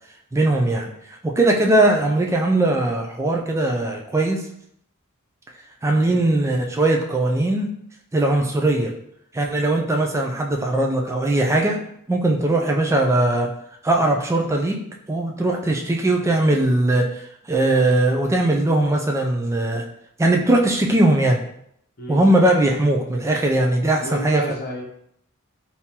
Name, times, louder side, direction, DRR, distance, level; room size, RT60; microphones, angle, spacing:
voice 1, 0.3-0.9 1.2-4.4 5.8-7.7 8.1-8.9 9.3-11.8 12.1-13.5 13.8-14.8 15.1-17.1 17.5-19.9 20.2-21.4 22.1-24.4, right 1 dB, 15° right, 1 dB, 0.3 m, -19 dB
voice 2, 23.9-24.8, equal, 45° left, 0 dB, 0.8 m, -31 dB
3.6 x 2.8 x 2.8 m, 0.72 s
head